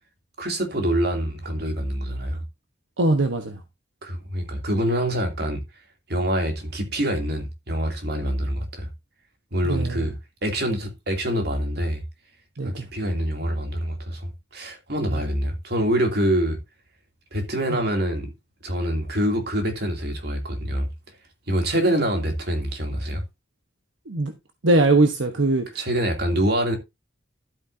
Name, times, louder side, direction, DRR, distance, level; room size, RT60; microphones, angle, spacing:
voice 1, 0.4-2.4 4.0-5.6 6.1-8.9 9.5-10.1 10.4-12.0 12.6-16.6 17.3-18.3 18.6-20.9 21.5-23.2 25.7-26.8, equal, 55° right, 2.7 m, -25 dB
voice 2, 3.0-3.5 9.6-10.0 12.6-12.8 24.1-24.3 24.6-25.6, right 2 dB, 80° right, 1.1 m, -20 dB
12.0 x 8.5 x 2.7 m
head